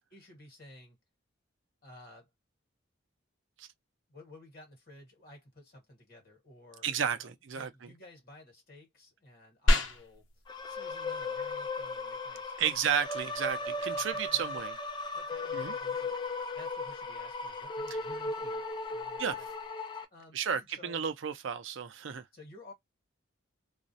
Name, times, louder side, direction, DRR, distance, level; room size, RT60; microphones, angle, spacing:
voice 1, 0.1-1.0 1.8-2.3 4.1-10.3 10.6-12.9 13.4-13.6 13.9-14.6 15.1-16.2 16.5-18.6 18.9-19.5 20.1-21.1 22.3-22.7, left 1 dB, 45° left, 1.2 m, -54 dB
voice 2, 6.8-7.9 12.6-14.7 15.5-15.8 19.2-19.4 20.3-22.2, right 8 dB, 70° right, 0.4 m, -32 dB
sound 1, 9.7-19.7, equal, 75° left, 0.8 m, -37 dB
sound 2, 10.5-20.0, left 3 dB, 20° left, 0.3 m, -37 dB
2.3 x 2.0 x 2.6 m
head